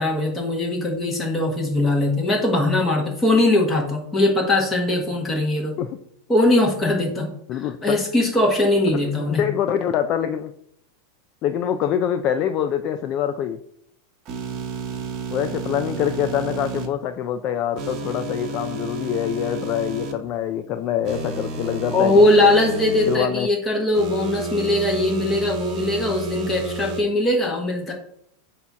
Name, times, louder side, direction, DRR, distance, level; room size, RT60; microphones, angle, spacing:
voice 1, 0.0-5.7 6.3-9.4 21.9-27.9, left 1 dB, 10° left, 0 dB, 1.6 m, -20 dB
voice 2, 7.5-8.0 9.1-10.5 11.4-13.6 15.3-22.2 23.1-23.5, left 9 dB, 35° left, 8 dB, 0.4 m, -25 dB
sound 1, 14.3-16.9 17.8-20.1 21.0-23.2 23.9-27.0, right 3 dB, 30° right, 1.1 m, -31 dB
8.2 x 2.9 x 6.2 m, 0.70 s
supercardioid pair, 160°, 0 cm